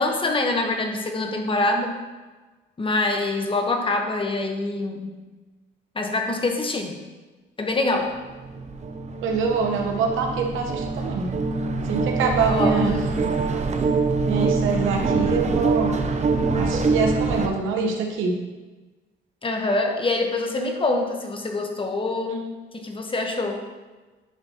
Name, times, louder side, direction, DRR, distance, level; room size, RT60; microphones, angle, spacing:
voice 1, 0.0-2.0 2.8-5.2 5.9-7.0 7.6-8.1 12.5-13.1 19.4-23.6, left 2 dB, 25° left, 3 dB, 1.0 m, -25 dB
sound 1, 8.3-17.5, right 3 dB, 35° right, 0.7 m, -24 dB
voice 2, 9.2-11.3 11.9-13.0 14.2-15.9 16.6-18.3, right 5 dB, 90° right, 2 dB, 1.0 m, -25 dB
10.5 x 4.3 x 2.9 m, 1.2 s
cardioid pair, 90°, 20 cm